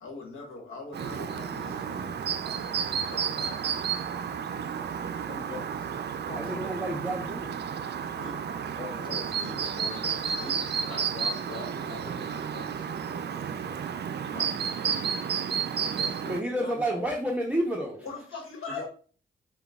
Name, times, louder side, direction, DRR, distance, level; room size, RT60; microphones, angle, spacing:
voice 1, 0.0-4.1 8.0-8.4 9.0-13.8 14.3-15.2 17.9-18.9, left 3 dB, 80° left, 1 dB, 1.2 m, -43 dB
Chirp tweet, 0.9-16.4, right 7 dB, 55° right, 0.4 m, -32 dB
voice 2, 5.2-6.0 6.3-6.7 8.8-9.2 12.8-12.9 16.0-17.1 18.3-18.4 18.8-18.9, left 3 dB, 25° left, 1 dB, 1.1 m, -42 dB
voice 3, 6.4-7.6 16.3-18.1, right 1 dB, 5° right, -1 dB, 0.8 m, -30 dB
6.6 x 2.3 x 2.3 m, 0.41 s
supercardioid pair, 50°, 21 cm